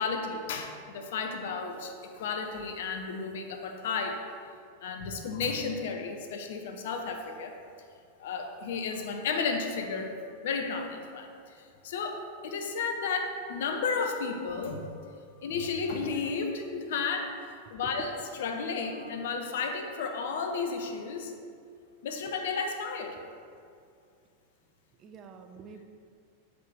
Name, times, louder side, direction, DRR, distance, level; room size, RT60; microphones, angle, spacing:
voice 1, 0.0-4.2 4.8-7.5 8.2-10.2 10.4-11.3 11.5-15.1 15.4-18.1 18.4-21.3 22.0-23.2, left 5 dB, 55° left, 4 dB, 0.7 m, -33 dB
voice 2, 25.0-25.8, right 6 dB, 30° right, 5 dB, 0.5 m, -46 dB
7.6 x 5.0 x 3.4 m, 2.3 s
figure-of-eight pair, 90°, 0 cm